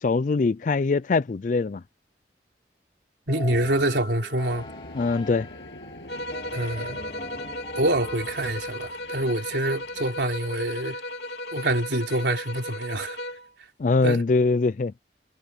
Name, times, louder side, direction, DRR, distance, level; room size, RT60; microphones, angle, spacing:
voice 1, 0.0-1.8 4.9-5.5 13.8-14.9, left 3 dB, 45° left, 0.4 m, -22 dB
sound 1, 3.3-9.0, left 2 dB, 30° left, 5.0 m, -42 dB
voice 2, 3.3-4.7 6.5-7.0 7.8-11.0 11.5-13.2 13.6-13.7 14.0-14.2, right 1 dB, 85° right, 3.7 m, -26 dB
sound 2, 4.5-10.3, left 1 dB, 90° left, 7.8 m, -45 dB
sound 3, 6.1-13.5, left 1 dB, 70° left, 3.5 m, -35 dB
head